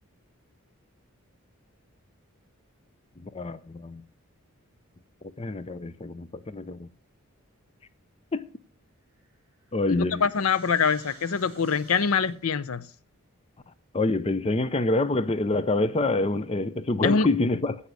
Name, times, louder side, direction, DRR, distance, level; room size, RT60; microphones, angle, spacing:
voice 1, 3.2-4.0 5.4-6.9 8.3-8.4 9.7-10.2 13.9-17.8, left 2 dB, 25° left, 0.5 m, -26 dB
sound 1, 9.1-12.5, right 2 dB, 10° right, 6.4 m, -52 dB
voice 2, 9.9-12.8 17.0-17.3, left 5 dB, 75° left, 0.6 m, -24 dB
16.5 x 5.6 x 6.2 m
head